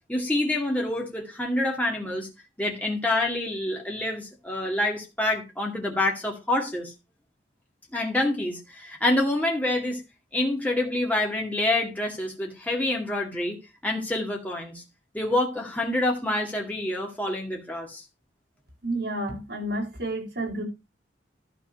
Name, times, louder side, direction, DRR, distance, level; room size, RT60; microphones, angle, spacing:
voice 1, 0.1-2.3 2.6-6.9 7.9-10.0 10.3-13.6 13.8-14.8 15.1-18.0, left 1 dB, 10° left, 2.3 m, -27 dB
voice 2, 18.8-20.6, right 1 dB, 65° right, 4.9 m, -30 dB
12.5 x 4.6 x 6.0 m
head